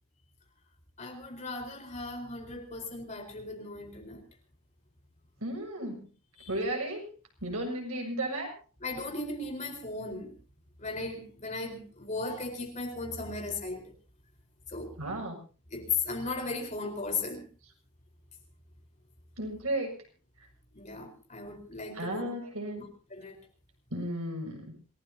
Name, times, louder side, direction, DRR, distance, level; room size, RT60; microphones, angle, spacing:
voice 1, 1.0-4.2 6.4-6.5 8.8-10.3 10.8-13.8 14.7-14.9 15.7-17.4 20.7-22.3 22.8-22.9 23.1-23.4, left 3 dB, 35° left, 3 dB, 4.5 m, -36 dB
voice 2, 5.4-6.1 6.5-7.1 7.4-8.5 15.0-15.4 19.4-19.9 21.9-22.8 23.9-24.7, right 1 dB, 85° right, 2 dB, 6.8 m, -34 dB
27.5 x 18.0 x 2.9 m, 0.37 s
head